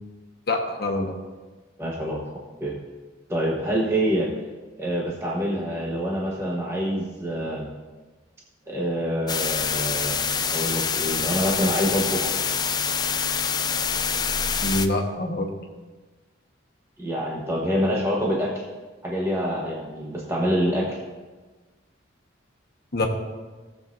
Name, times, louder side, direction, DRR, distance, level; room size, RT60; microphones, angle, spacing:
voice 1, 0.5-1.1 14.6-15.5 22.9-23.0, left 2 dB, 50° left, 1 dB, 1.2 m, -25 dB
voice 2, 1.8-2.2 2.6-2.8 3.3-4.3 4.8-7.7 8.7-12.4 17.0-18.7 19.0-21.0, equal, 15° right, -3 dB, 1.0 m, -26 dB
sound 1, 9.3-14.9, left 6 dB, 20° left, 0.3 m, -26 dB
17.5 x 7.5 x 2.6 m, 1.3 s
head